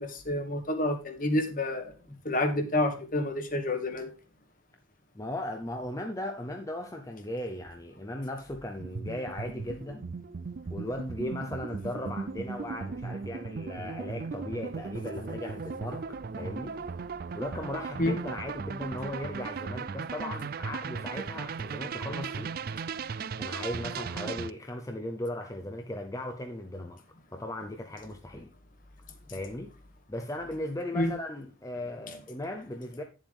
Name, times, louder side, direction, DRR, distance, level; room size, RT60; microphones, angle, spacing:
voice 1, 0.0-1.9 2.2-4.1 18.0-18.2 30.9-31.1 32.1-32.2, left 1 dB, 40° left, 1.6 m, -29 dB
voice 2, 5.1-10.1 10.7-16.8 17.3-22.5 23.4-27.0 27.3-28.5 29.3-29.7 30.1-33.0, left 1 dB, 15° left, 0.6 m, -37 dB
sound 1, 8.8-24.5, right 5 dB, 45° right, 0.4 m, -37 dB
9.8 x 7.3 x 3.5 m
head